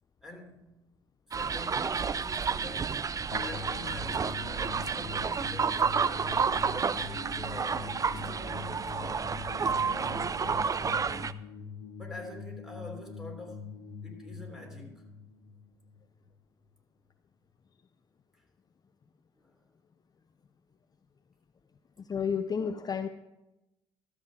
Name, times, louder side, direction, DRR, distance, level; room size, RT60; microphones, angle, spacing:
voice 1, 0.2-0.7 1.3-3.0 3.3-6.3 6.9-11.3 12.0-13.8 14.0-15.1 18.3-18.4 19.3-19.6, left 1 dB, 5° right, 1 dB, 3.3 m, -46 dB
sound 1, 1.3-11.3, right 6 dB, 25° right, 0.4 m, -30 dB
sound 2, 3.3-16.4, left 6 dB, 70° left, 0.8 m, -44 dB
voice 2, 22.0-23.1, left 6 dB, 30° left, 10 dB, 0.5 m, -31 dB
13.0 x 7.4 x 4.9 m, 0.96 s
hypercardioid pair, 55°, 13 cm